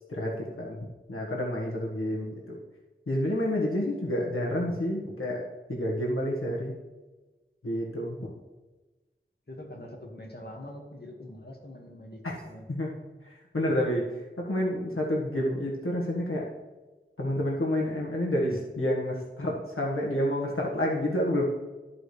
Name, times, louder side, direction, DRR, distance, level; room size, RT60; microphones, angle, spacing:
voice 1, 0.1-2.6 3.1-5.4 5.7-6.7 7.6-8.3 12.2-12.3 12.7-12.9 13.3-14.0 14.4-16.4 17.2-21.4, left 1 dB, 80° left, -3 dB, 1.5 m, -29 dB
voice 2, 1.7-2.3 9.5-12.7, left 1 dB, 50° left, 0 dB, 1.7 m, -45 dB
14.0 x 5.0 x 3.2 m, 1.2 s
wide cardioid pair, 40°, 21 cm